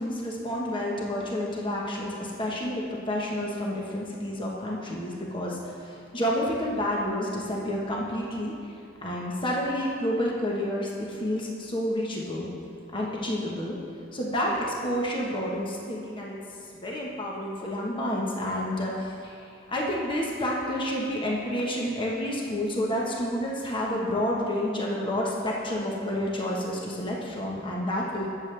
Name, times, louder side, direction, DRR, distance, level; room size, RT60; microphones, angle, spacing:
voice 1, 0.0-8.5 9.0-12.5 12.9-13.8 14.1-16.4 16.8-19.4 19.7-28.3, left 1 dB, 25° left, -3 dB, 1.3 m, -29 dB
20.0 x 7.7 x 3.4 m, 2.5 s
head